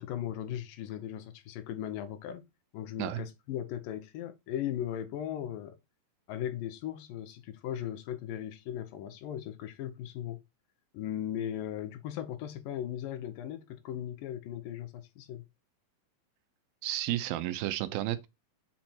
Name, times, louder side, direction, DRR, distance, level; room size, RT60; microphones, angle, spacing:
voice 1, 0.0-2.4 2.7-5.8 6.3-10.4 10.9-15.4, left 11 dB, 75° left, 2.6 m, -37 dB
voice 2, 16.8-18.3, right 14 dB, 85° right, 2.6 m, -32 dB
7.6 x 4.4 x 4.3 m
omnidirectional pair, 4.1 m